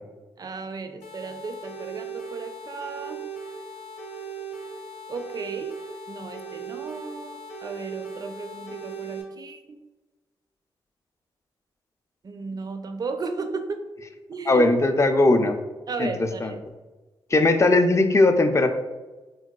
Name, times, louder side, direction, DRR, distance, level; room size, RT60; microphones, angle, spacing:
voice 1, 0.4-3.2 5.1-5.8 6.1-9.6 12.2-13.8 14.3-14.7 15.9-16.6, right 4 dB, 35° right, 7 dB, 0.4 m, -34 dB
sound 1, 1.0-9.2, right 4 dB, 80° left, 0.6 m, -38 dB
voice 2, 14.5-15.6 16.0-16.5 17.3-18.7, left 2 dB, 25° left, 7 dB, 0.4 m, -19 dB
3.9 x 2.2 x 2.2 m, 1.2 s
supercardioid pair, 45°, 11 cm